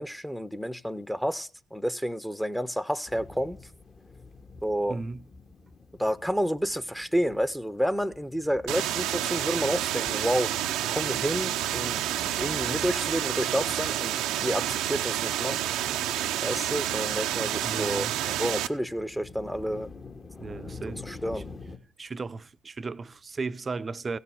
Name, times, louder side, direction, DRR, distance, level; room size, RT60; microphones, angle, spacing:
voice 1, 0.0-3.6 4.6-5.0 6.0-10.5 10.9-12.0 12.4-15.6 16.4-19.9 21.0-21.4, equal, ahead, 1.0 m, -30 dB
sound 1, 3.1-21.8, left 4 dB, 35° left, 2.1 m, -48 dB
voice 2, 4.9-5.2 17.6-18.4 20.4-21.0 21.3-21.4 22.0-24.2, right 4 dB, 35° right, 0.6 m, -35 dB
sound 2, 8.7-18.7, right 12 dB, 75° right, 0.6 m, -29 dB
16.0 x 6.8 x 7.7 m
hypercardioid pair, 50°, 0 cm